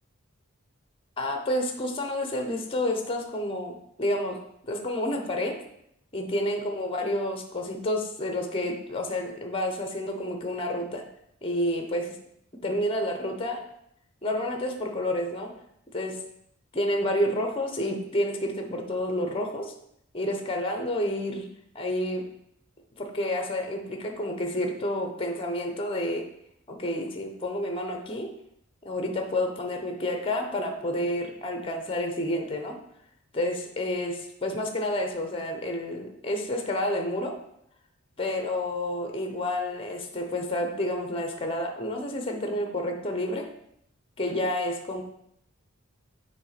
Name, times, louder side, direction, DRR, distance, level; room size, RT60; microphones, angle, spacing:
voice 1, 1.2-4.4 4.6-5.5 6.1-11.0 11.4-12.1 12.6-13.6 14.2-15.5 15.9-16.2 16.7-19.7 20.1-21.5 21.7-22.2 23.0-26.2 26.7-28.3 28.8-32.8 33.3-37.3 38.2-43.5 44.2-45.0, left 1 dB, 25° left, 4 dB, 0.8 m, -29 dB
7.0 x 3.3 x 5.7 m, 0.75 s
head